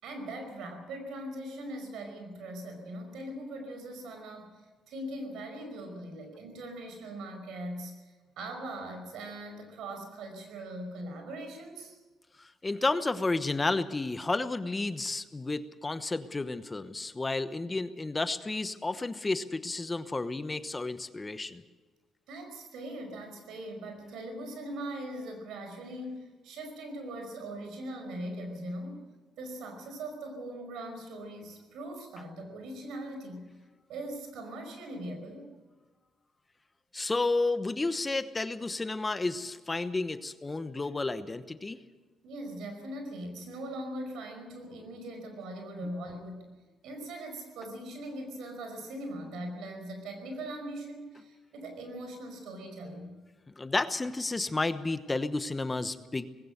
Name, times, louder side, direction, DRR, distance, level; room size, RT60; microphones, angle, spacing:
voice 1, 0.0-4.6 4.9-12.0 22.3-29.0 29.4-33.5 33.9-35.5 42.2-46.5 46.8-53.2, right 1 dB, 85° right, 5 dB, 5.2 m, -40 dB
voice 2, 12.4-21.6 36.9-41.8 53.6-56.3, left 3 dB, 20° left, 12 dB, 1.0 m, -31 dB
19.5 x 17.0 x 8.0 m, 1.3 s
cardioid pair, 90°, 0 cm